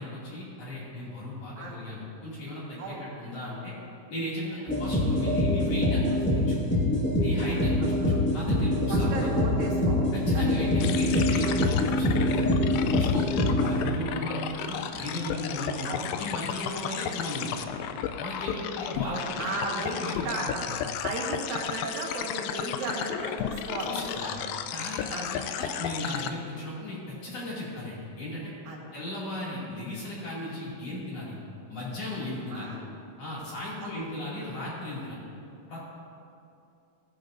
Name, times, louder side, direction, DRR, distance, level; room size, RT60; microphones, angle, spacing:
voice 1, 0.0-3.7 4.1-6.5 7.2-9.3 10.1-12.6 12.9-17.7 18.2-20.8 23.8-24.4 24.7-28.5 28.9-31.4 31.7-32.8 33.2-35.2 35.7-35.8, left 1 dB, 50° left, -7 dB, 3.4 m, -36 dB
sound 1, 4.7-14.2, left 1 dB, 15° left, 0.3 m, -25 dB
voice 2, 8.9-10.0 10.3-10.4 11.4-11.6 15.8-16.0 19.0-20.7 21.0-23.9 24.2-24.5 25.1-25.3 28.7-28.8 32.5-32.8 33.8-33.9, right 2 dB, 80° right, -3 dB, 3.4 m, -35 dB
sound 2, 10.8-26.3, left 8 dB, 90° left, 2.3 m, -34 dB
17.0 x 10.0 x 2.6 m, 2.6 s
omnidirectional pair, 4.0 m